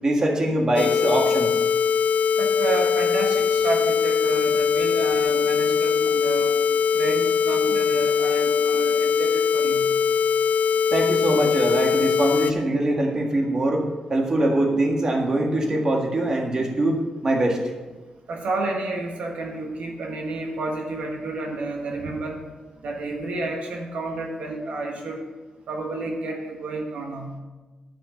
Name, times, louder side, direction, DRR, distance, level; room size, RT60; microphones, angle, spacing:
voice 1, 0.0-1.5 10.9-13.8 14.1-17.0 17.2-17.6, right 1 dB, 30° right, 0 dB, 1.7 m, -22 dB
sound 1, 0.8-12.5, left 6 dB, 85° left, 0.4 m, -21 dB
voice 2, 2.4-6.5 6.9-9.9 18.3-22.4 22.8-25.2 25.7-27.4, right 2 dB, 70° right, 2 dB, 1.4 m, -30 dB
12.0 x 5.9 x 6.6 m, 1.2 s
wide cardioid pair, 155°, 2 cm